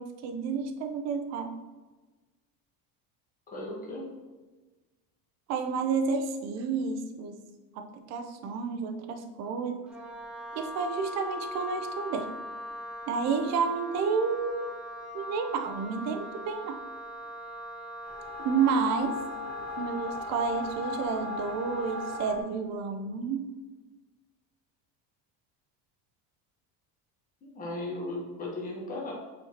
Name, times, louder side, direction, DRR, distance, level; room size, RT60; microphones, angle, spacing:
voice 1, 0.0-1.6 5.5-7.4 7.7-9.8 10.5-12.3 13.1-14.7 15.1-16.8 18.4-19.2 19.8-23.5, right 5 dB, 40° right, 6 dB, 0.6 m, -30 dB
voice 2, 3.5-4.0 27.4-29.1, left 2 dB, 20° left, -3 dB, 1.3 m, -36 dB
Wind instrument woodwind instrument, 9.9-22.4, equal, 5° right, 0.7 m, -41 dB
sound 1, 18.0-22.4, left 4 dB, 45° left, 1.2 m, -37 dB
8.1 x 4.5 x 2.9 m, 1.2 s
cardioid pair, 165°, 39 cm